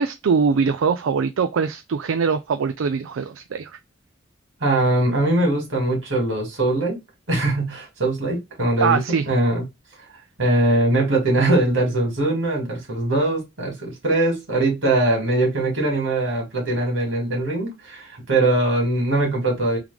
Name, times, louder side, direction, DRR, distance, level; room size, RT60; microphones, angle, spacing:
voice 1, 0.0-3.8 8.8-9.3, right 5 dB, 90° right, 0.4 m, -22 dB
voice 2, 4.6-7.0 7.3-9.0 9.3-9.6 10.4-19.8, right 2 dB, 75° right, 2.3 m, -21 dB
3.7 x 3.1 x 3.3 m
head